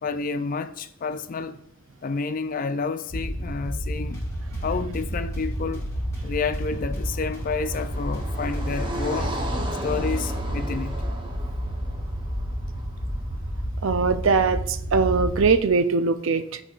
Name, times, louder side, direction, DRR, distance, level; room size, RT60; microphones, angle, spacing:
voice 1, 0.0-1.6 2.0-4.2 4.6-5.9 6.2-9.4 9.8-11.0, left 4 dB, 40° left, 0.4 m, -29 dB
sound 1, 3.1-15.5, equal, 5° right, 1.9 m, -30 dB
sound 2, 4.1-10.8, left 1 dB, 15° left, 2.0 m, -44 dB
Car passing by, 6.1-13.4, right 1 dB, 25° right, 0.9 m, -36 dB
voice 2, 13.8-16.6, right 4 dB, 70° right, 0.5 m, -21 dB
13.5 x 4.5 x 2.5 m
head